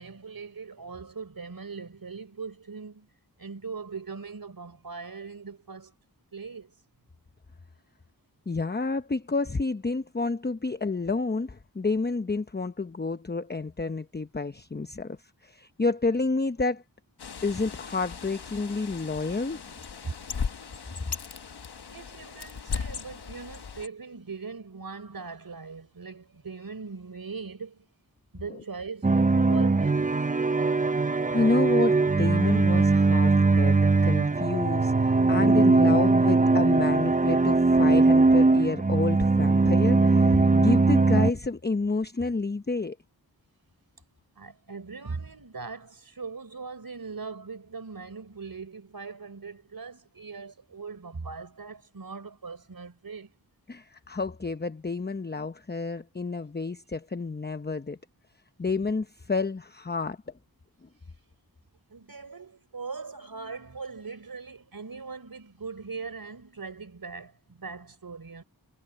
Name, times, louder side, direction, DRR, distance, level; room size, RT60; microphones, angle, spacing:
voice 1, 0.0-3.1 3.4-5.9 6.3-6.7 20.0-20.1 21.9-27.8 28.3-29.2 29.5-30.2 44.4-53.3 61.9-68.4, right 4 dB, 65° right, 4.5 m, -40 dB
voice 2, 8.5-15.2 15.4-16.8 17.4-19.6 31.3-43.0 53.7-58.0 58.6-60.2, left 3 dB, 25° left, 0.9 m, -29 dB
Bird, 17.2-23.9, left 6 dB, 85° left, 1.2 m, -37 dB
sound 1, 29.0-41.3, right 3 dB, 20° right, 0.6 m, -21 dB
wide cardioid pair, 50°, 39 cm